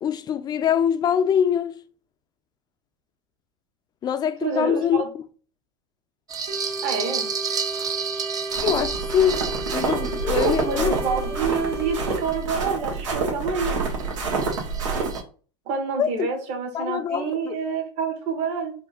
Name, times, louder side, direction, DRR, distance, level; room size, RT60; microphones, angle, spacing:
voice 1, 0.0-1.8 4.0-5.2 8.6-10.9 16.0-16.3 16.7-17.6, left 8 dB, 25° left, 0.5 m, -24 dB
voice 2, 4.4-5.0 6.8-7.3 10.4-13.7 15.7-18.7, right 5 dB, 50° right, 1.7 m, -27 dB
sound 1, 6.3-13.0 13.4-15.2, right 6 dB, 25° right, 0.6 m, -32 dB
sound 2, 6.5-12.2, right 2 dB, 65° right, 2.1 m, -34 dB
sound 3, 8.5-15.2, right 4 dB, 90° right, 1.5 m, -28 dB
4.8 x 2.5 x 3.8 m
hypercardioid pair, 115°, 16 cm